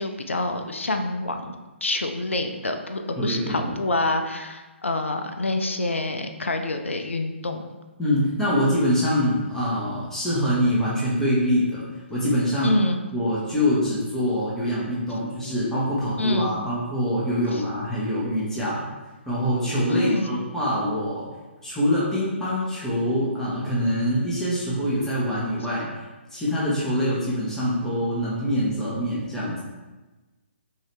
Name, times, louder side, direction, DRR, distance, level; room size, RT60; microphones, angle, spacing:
voice 1, 0.0-1.5 1.8-7.6 12.6-13.0 15.4-15.5 16.2-16.5 17.5-17.6 19.9-20.3, left 2 dB, 80° left, 6 dB, 0.5 m, -26 dB
voice 2, 3.2-3.7 8.0-11.8 12.1-12.7 13.1-18.8 19.3-21.3 21.6-25.9 26.3-29.6, equal, 5° left, -8 dB, 1.1 m, -24 dB
5.6 x 2.9 x 3.4 m, 1.2 s
figure-of-eight pair, 135°, 7 cm